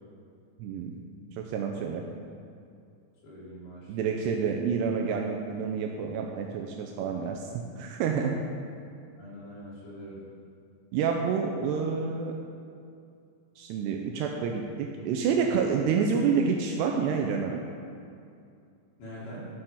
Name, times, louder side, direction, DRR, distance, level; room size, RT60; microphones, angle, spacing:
voice 1, 0.6-1.0 1.3-2.1 3.9-8.4 10.9-12.4 13.6-17.6, right 6 dB, 80° right, 2 dB, 2.6 m, -28 dB
voice 2, 3.2-3.9 9.2-10.2 19.0-19.5, equal, 80° left, -8 dB, 5.4 m, -43 dB
11.5 x 6.7 x 5.5 m, 2.4 s
omnidirectional pair, 5.0 m